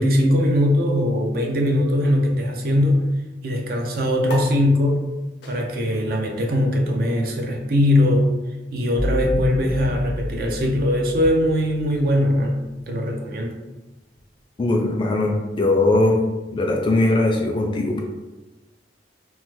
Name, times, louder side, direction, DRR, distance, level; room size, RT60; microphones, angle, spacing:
voice 1, 0.0-3.1 3.4-5.1 5.5-8.3 8.7-13.6, left 1 dB, 55° right, 2 dB, 0.4 m, -20 dB
sound 1, 4.2-11.1, left 1 dB, 75° left, 0.7 m, -42 dB
sound 2, 9.0-12.5, left 1 dB, 85° right, 1.1 m, -30 dB
voice 2, 14.6-16.2 16.5-18.0, left 2 dB, 25° left, 0 dB, 0.3 m, -20 dB
3.1 x 2.1 x 3.1 m, 1.1 s
head